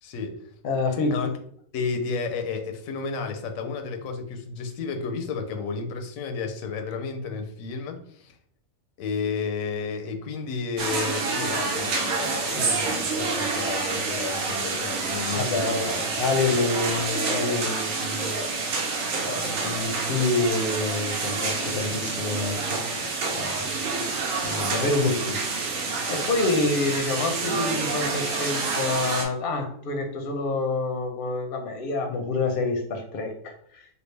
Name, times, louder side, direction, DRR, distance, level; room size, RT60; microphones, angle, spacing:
voice 1, 0.0-0.4 1.1-1.3 1.7-8.4 9.0-15.9, left 5 dB, 85° left, 5 dB, 1.0 m, -32 dB
voice 2, 0.6-1.3 15.3-23.0 23.3-23.7 24.4-33.5, left 3 dB, 55° left, 4 dB, 0.7 m, -27 dB
sound 1, 10.8-29.2, right 4 dB, 80° right, 1.1 m, -28 dB
3.3 x 2.4 x 3.2 m, 0.63 s
omnidirectional pair, 1.4 m